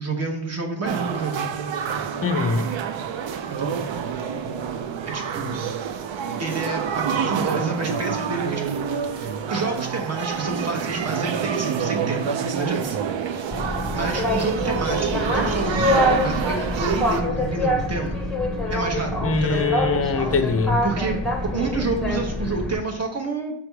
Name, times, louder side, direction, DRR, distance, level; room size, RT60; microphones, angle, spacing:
voice 1, 0.0-1.5 3.5-3.9 5.0-5.6 6.4-13.0 13.3-18.2 18.7-19.7 20.2-20.4 20.8-21.2 21.5-23.5, right 3 dB, 30° right, 1.0 m, -29 dB
sound 1, 0.8-17.2, right 7 dB, 65° right, 0.6 m, -27 dB
voice 2, 2.2-2.7 19.2-20.8, left 4 dB, 30° left, 0.5 m, -22 dB
Boat Water vehicle, 13.5-22.7, left 1 dB, ahead, 0.8 m, -25 dB
7.0 x 3.4 x 4.5 m
wide cardioid pair, 175°, 49 cm